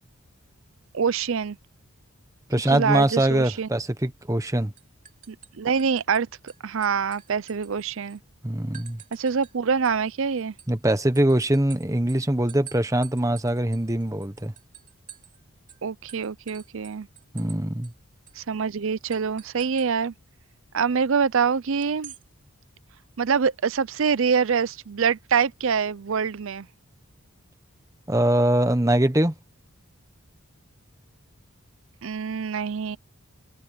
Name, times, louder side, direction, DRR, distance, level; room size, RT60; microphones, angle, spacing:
voice 1, 0.9-1.6 2.7-3.7 5.3-8.2 9.1-10.5 15.8-17.1 18.4-20.1 20.7-22.1 23.2-26.7 32.0-33.0, right 6 dB, 60° right, 0.5 m, -25 dB
voice 2, 2.5-4.7 8.4-9.0 10.7-14.5 17.3-17.9 28.1-29.3, right 1 dB, 15° right, 1.1 m, -22 dB
sound 1, 4.2-4.5 4.8-6.2 6.5-8.2 8.7-9.5 9.8-15.4 15.7-15.8 16.1-17.6 17.8-17.9 18.3-18.4 19.1-19.9 21.8-22.2, right 10 dB, 35° right, 2.5 m, -48 dB
head